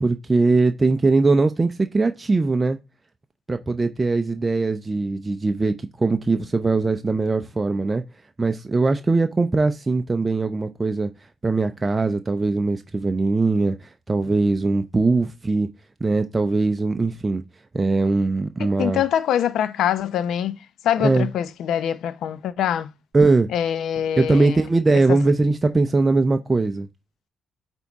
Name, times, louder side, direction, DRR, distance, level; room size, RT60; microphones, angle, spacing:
voice 1, 0.0-2.8 3.5-8.0 8.4-11.1 11.4-15.7 16.0-17.4 17.7-19.0 21.0-21.3 23.1-23.5 24.2-26.9, right 3 dB, 25° right, 0.6 m, -21 dB
voice 2, 18.6-22.9 23.5-24.6 25.1-25.2, left 10 dB, 75° left, 0.6 m, -24 dB
8.2 x 3.6 x 4.1 m
cardioid pair, 90°, 0 cm